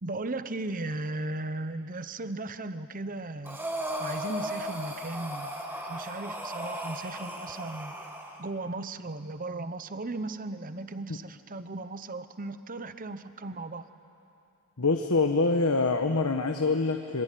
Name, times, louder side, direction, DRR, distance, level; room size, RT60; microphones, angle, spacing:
voice 1, 0.0-3.6 4.0-5.5 5.8-7.9 8.4-13.9, right 2 dB, 40° right, 11 dB, 1.0 m, -36 dB
Breathing, 3.5-8.4, equal, 10° right, 2.0 m, -36 dB
voice 2, 14.8-17.2, left 3 dB, 75° left, 5 dB, 1.2 m, -25 dB
26.5 x 24.5 x 9.2 m, 2.7 s
head